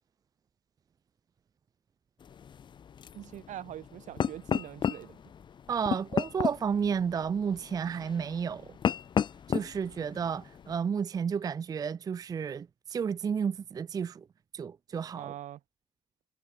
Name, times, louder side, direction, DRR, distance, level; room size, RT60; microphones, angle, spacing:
sound 1, 2.2-10.7, left 7 dB, 40° left, 0.8 m, -34 dB
voice 1, 3.1-5.2 15.2-15.6, right 12 dB, 75° right, 6.0 m, -43 dB
voice 2, 5.7-8.7 9.5-14.2 14.5-15.3, right 6 dB, 30° right, 0.5 m, -32 dB
cardioid pair, 160°, 13 cm